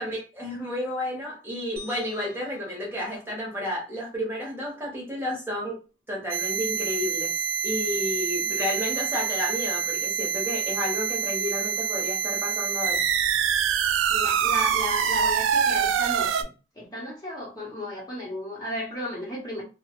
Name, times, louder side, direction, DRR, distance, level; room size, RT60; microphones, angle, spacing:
voice 1, 0.0-5.8 6.1-7.3 7.6-13.0, left 1 dB, 10° right, -3 dB, 0.9 m, -31 dB
sound 1, 1.8-4.1, left 2 dB, 50° right, 0.7 m, -49 dB
sound 2, 6.3-16.4, right 7 dB, 85° right, 0.3 m, -26 dB
voice 2, 14.1-16.5 16.8-19.6, left 1 dB, 20° left, -4 dB, 0.8 m, -34 dB
3.0 x 2.0 x 2.9 m, 0.33 s
head